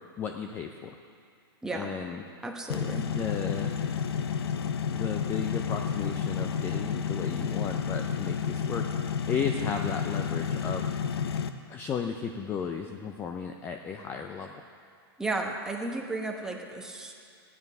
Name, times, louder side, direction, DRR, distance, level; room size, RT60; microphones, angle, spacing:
voice 1, 0.2-0.9 1.7-2.2 3.1-3.7 4.9-10.9 11.7-14.5, left 6 dB, 15° left, 4 dB, 0.4 m, -34 dB
voice 2, 2.4-3.1 15.2-17.1, right 2 dB, 5° right, 1 dB, 1.0 m, -34 dB
sound 1, 2.7-11.5, left 7 dB, 80° left, 0.7 m, -30 dB
15.0 x 9.5 x 5.4 m, 2.4 s
hypercardioid pair, 150°, 13 cm